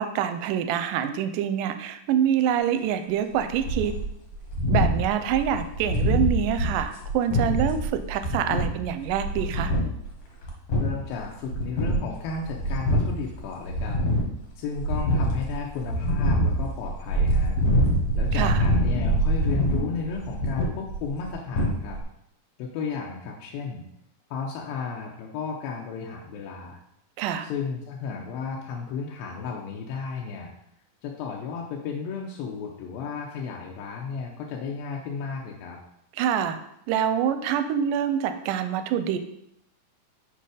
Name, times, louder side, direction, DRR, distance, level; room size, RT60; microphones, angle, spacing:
voice 1, 0.0-3.9 4.7-9.7 18.3-18.6 27.2-27.5 36.1-36.6 36.9-39.2, right 9 dB, 80° right, 9 dB, 2.0 m, -26 dB
sound 1, 3.3-10.2 10.4-11.2 11.5-13.4 13.7-14.4 14.7-22.0, equal, 55° left, 2.6 m, -24 dB
voice 2, 10.8-14.0 14.6-17.6 18.1-22.0 22.6-23.8 24.3-26.8 27.4-30.5 31.0-35.8, left 5 dB, 85° left, -1 dB, 2.6 m, -33 dB
6.8 x 5.4 x 5.0 m, 0.78 s
omnidirectional pair, 4.2 m